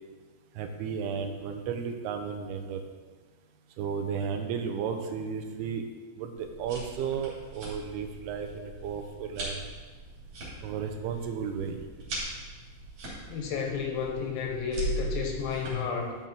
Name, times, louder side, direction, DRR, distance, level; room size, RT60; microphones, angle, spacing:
voice 1, 0.6-2.8 3.8-5.9 6.2-9.6 10.6-11.8, right 6 dB, 85° right, 5 dB, 2.6 m, -33 dB
sound 1, 6.4-15.7, right 2 dB, 50° right, 3.9 m, -39 dB
voice 2, 13.3-16.2, left 6 dB, 75° left, 2 dB, 2.4 m, -32 dB
12.0 x 5.4 x 3.6 m, 1.4 s
omnidirectional pair, 4.6 m